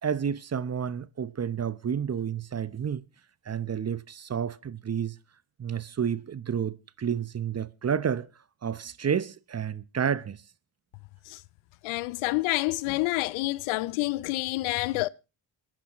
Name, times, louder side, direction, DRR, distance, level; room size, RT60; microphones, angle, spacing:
voice 1, 0.0-3.1 3.5-5.2 5.6-8.3 8.6-10.4, right 7 dB, 30° right, 0.9 m, -30 dB
voice 2, 11.8-15.1, left 20 dB, 80° left, 0.7 m, -28 dB
27.5 x 10.5 x 3.0 m
supercardioid pair, 55°, 48 cm